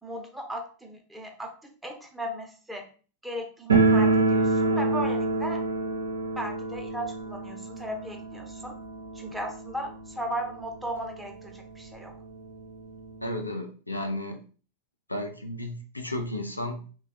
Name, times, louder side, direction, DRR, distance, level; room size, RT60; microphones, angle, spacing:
voice 1, 0.0-2.9 3.2-5.6 6.4-8.7 9.1-12.1, right 1 dB, 5° right, 2 dB, 0.6 m, -36 dB
sound 1, 3.7-10.4 10.7-10.8 11.0-11.1 11.9-12.0 12.3-13.4, right 3 dB, 70° right, 0.6 m, -26 dB
voice 2, 13.2-14.4 15.1-17.0, left 1 dB, 85° left, 4 dB, 0.5 m, -33 dB
3.2 x 2.2 x 2.6 m, 0.39 s
figure-of-eight pair, 90°, 0 cm